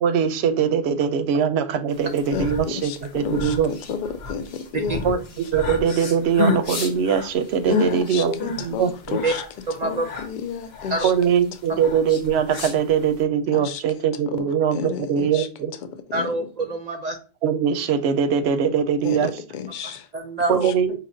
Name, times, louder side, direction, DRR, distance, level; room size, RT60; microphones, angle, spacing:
voice 1, 0.0-3.7 5.0-9.2 11.0-15.7 17.4-19.3 20.5-20.9, right 7 dB, 85° right, 10 dB, 0.8 m, -22 dB
sound 1, 2.0-13.2, left 3 dB, 80° left, 1.1 m, -31 dB
voice 2, 2.3-5.2 7.6-9.4 9.8-11.1 13.5-13.8 14.3-15.5 15.8-16.4 19.0-20.1 20.5-20.7, left 6 dB, 60° left, 9 dB, 0.6 m, -31 dB
voice 3, 9.7-10.1 10.9-11.0 16.1-17.2 20.1-20.7, right 2 dB, 55° right, 4 dB, 0.5 m, -26 dB
4.8 x 2.8 x 2.6 m, 0.36 s
omnidirectional pair, 1.0 m